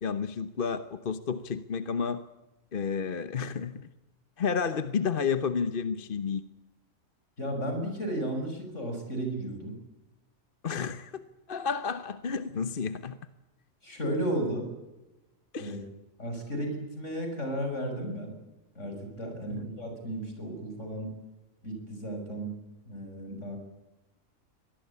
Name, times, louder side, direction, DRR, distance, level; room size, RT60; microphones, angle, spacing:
voice 1, 0.0-2.2 2.7-3.9 4.4-6.4 10.6-13.2 15.5-15.8 19.5-19.6, left 6 dB, 45° left, 11 dB, 1.1 m, -31 dB
voice 2, 7.4-9.7 13.8-14.7 15.6-15.8 16.2-18.3 18.7-21.1 21.6-22.6 22.9-23.6, right 1 dB, 65° left, 4 dB, 6.7 m, -34 dB
24.5 x 19.0 x 8.5 m, 1.0 s
omnidirectional pair, 1.4 m